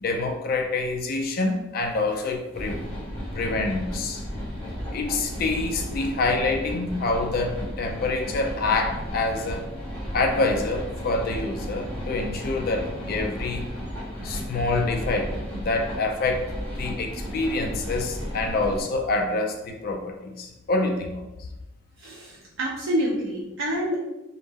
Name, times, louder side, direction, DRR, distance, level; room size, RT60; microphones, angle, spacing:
voice 1, 0.0-2.8 3.3-4.2 4.9-9.6 10.1-13.8 14.2-16.5 16.8-21.5, left 3 dB, 45° left, 3 dB, 0.3 m, -26 dB
sound 1, 2.5-18.8, equal, 5° left, 0.7 m, -34 dB
voice 2, 22.0-24.0, equal, 75° right, -6 dB, 0.6 m, -27 dB
2.1 x 2.1 x 3.3 m, 0.98 s
head